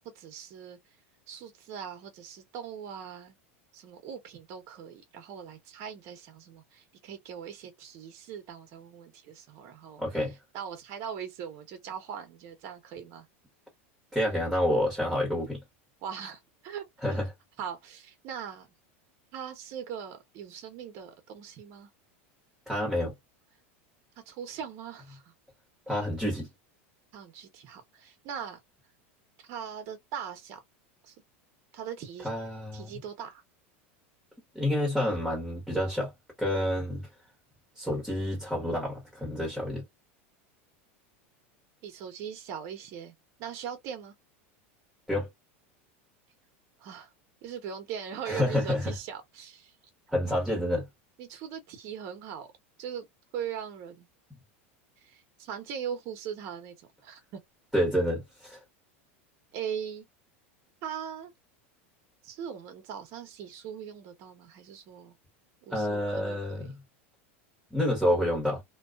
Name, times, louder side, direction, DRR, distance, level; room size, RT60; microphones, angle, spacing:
voice 1, 0.1-0.8 1.3-3.4 3.7-10.0 10.5-13.3 16.0-16.8 17.1-17.2 17.6-18.7 19.3-21.9 24.3-25.3 27.1-28.6 29.5-30.6 31.0-31.1 31.7-32.3 32.7-33.4 41.8-44.1 46.8-47.1 47.4-49.7 50.2-50.3 51.2-52.5 52.8-53.1 53.3-54.1 55.0-57.4 59.5-60.0 60.8-61.3 62.2-65.1 65.7-66.7, right 8 dB, 45° right, 0.9 m, -40 dB
voice 2, 10.0-10.3 14.1-15.6 17.0-17.3 22.7-23.1 25.9-26.5 32.2-33.0 34.5-36.1 36.4-37.1 37.8-39.8 45.1-45.3 48.2-48.9 50.1-50.9 57.7-58.6 65.7-66.7 67.7-68.6, left 1 dB, ahead, 1.1 m, -28 dB
2.3 x 2.3 x 2.4 m
supercardioid pair, 140°, 7 cm